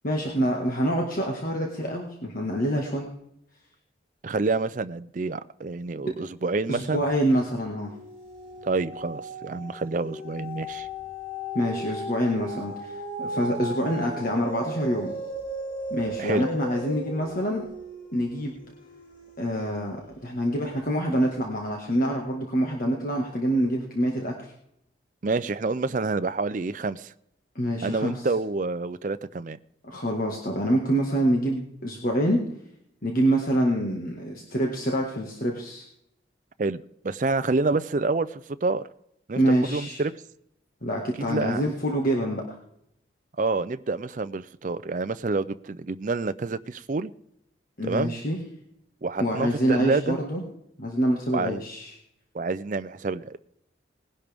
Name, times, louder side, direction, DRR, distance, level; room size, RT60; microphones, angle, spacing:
voice 1, 0.0-3.1 6.7-7.9 11.5-15.2 15.9-17.6 18.1-18.6 19.4-20.0 20.2-24.5 27.6-28.1 29.8-32.4 33.0-35.9 39.4-40.0 40.8-42.4 47.8-48.4 49.2-50.4 50.8-51.9, right 1 dB, 50° left, 1.7 m, -26 dB
voice 2, 4.2-7.0 8.6-10.9 16.2-16.5 25.2-27.1 27.8-29.6 36.6-38.9 39.3-40.1 41.3-41.6 43.4-47.1 47.8-48.2 49.0-50.2 51.3-51.6 52.3-53.4, right 3 dB, 45° right, 0.4 m, -28 dB
sound 1, 6.8-7.3 7.6-20.1 20.7-20.8, equal, 85° left, 4.4 m, -37 dB
19.5 x 11.0 x 3.5 m
head